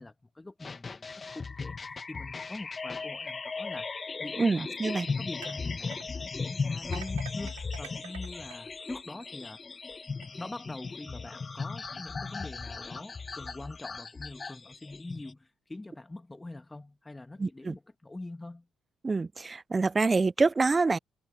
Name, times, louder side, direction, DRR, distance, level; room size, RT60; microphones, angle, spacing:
voice 1, 0.0-4.7 5.2-9.6 10.3-18.7, left 2 dB, 20° left, 1.7 m, -44 dB
sound 1, 0.6-15.3, left 4 dB, 35° left, 1.3 m, -37 dB
voice 2, 4.4-5.1 17.4-17.7 19.0-21.0, right 3 dB, 30° right, 0.3 m, -26 dB
sound 2, 4.5-9.5 10.0-10.3, right 18 dB, 90° right, 3.3 m, -50 dB
hypercardioid pair, 50°, 0 cm